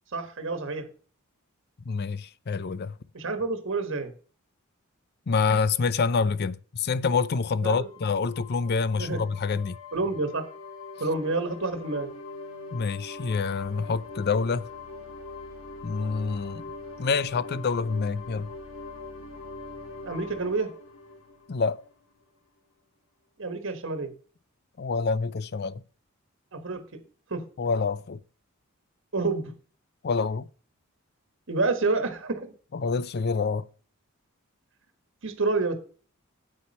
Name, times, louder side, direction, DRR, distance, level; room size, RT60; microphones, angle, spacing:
voice 1, 0.1-0.9 3.1-4.1 7.6-7.9 9.0-9.2 9.9-10.5 11.0-12.1 20.0-20.7 23.4-24.1 26.5-26.8 27.3-27.4 29.1-29.5 31.5-32.5 35.2-35.7, right 3 dB, 60° right, 1.4 m, -28 dB
voice 2, 1.9-3.0 5.3-9.8 12.7-14.7 15.8-16.7 17.0-18.5 21.5-21.8 24.8-25.8 27.6-28.2 30.0-30.5 32.7-33.6, left 4 dB, 50° left, 0.5 m, -27 dB
sound 1, 7.8-22.2, left 3 dB, 85° left, 2.1 m, -42 dB
8.6 x 8.6 x 4.2 m
head